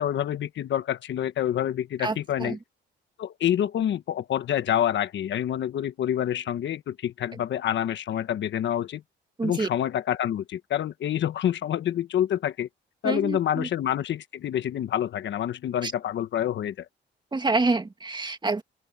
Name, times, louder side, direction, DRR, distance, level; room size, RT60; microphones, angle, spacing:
voice 1, 0.0-2.6 3.2-9.0 9.4-12.7 13.0-16.9, left 10 dB, 70° left, 1.3 m, -27 dB
voice 2, 2.0-2.6 9.4-9.7 13.0-13.7 15.8-15.9 17.3-18.6, right 3 dB, 20° right, 2.3 m, -27 dB
open air
cardioid pair, 90°, 20 cm